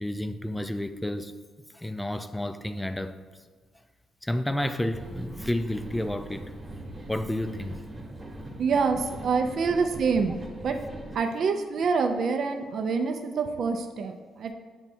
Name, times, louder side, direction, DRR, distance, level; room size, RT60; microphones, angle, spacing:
voice 1, 0.0-1.3 1.7-3.2 4.2-6.5 7.1-7.7 9.4-9.5, left 1 dB, 10° left, 0.4 m, -31 dB
sound 1, 4.9-11.2, right 1 dB, 25° right, 1.1 m, -41 dB
voice 2, 8.6-10.4 10.6-10.8 11.1-14.5, right 5 dB, 60° right, 0.4 m, -26 dB
7.9 x 3.5 x 4.2 m
cardioid pair, 90°, 0 cm